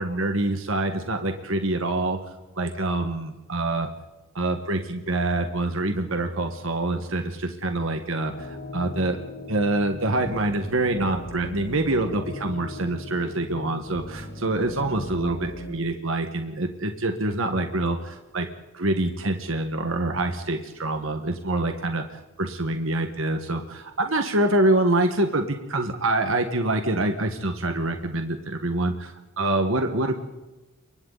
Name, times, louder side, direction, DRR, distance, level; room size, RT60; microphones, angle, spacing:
voice 1, 0.0-2.2 2.6-3.9 4.3-9.2 9.5-18.5 18.7-30.2, right 2 dB, 70° right, 5 dB, 1.6 m, -26 dB
sound 1, 8.3-15.7, left 1 dB, 60° left, 5.7 m, -38 dB
28.5 x 24.0 x 4.1 m, 1.1 s
head